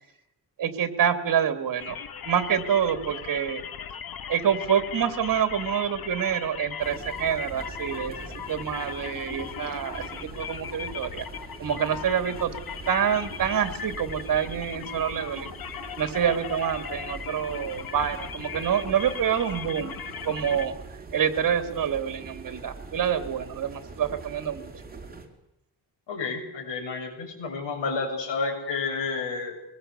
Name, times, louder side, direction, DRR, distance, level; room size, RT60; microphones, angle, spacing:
voice 1, 0.6-2.0 2.2-3.6 4.3-8.1 8.5-11.2 11.6-12.5 12.9-15.5 16.0-19.9 20.2-20.7 21.1-24.7, right 8 dB, 50° right, 10 dB, 2.6 m, -27 dB
sound 1, 1.8-20.7, left 8 dB, 55° left, 1.6 m, -38 dB
sound 2, 6.8-25.3, right 4 dB, 20° right, 4.1 m, -43 dB
voice 2, 26.1-29.6, left 4 dB, 75° left, 2 dB, 7.5 m, -31 dB
23.5 x 20.5 x 8.3 m, 0.83 s
cardioid pair, 130°, 43 cm